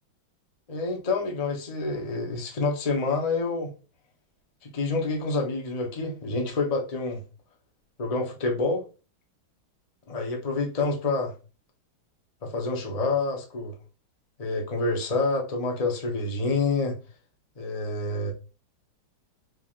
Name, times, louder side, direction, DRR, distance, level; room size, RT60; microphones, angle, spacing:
voice 1, 0.7-3.7 4.6-7.2 8.0-8.8 10.1-11.3 12.4-13.7 14.4-16.9 17.6-18.3, left 3 dB, 45° left, 0.4 m, -27 dB
4.6 x 3.7 x 2.4 m
omnidirectional pair, 2.2 m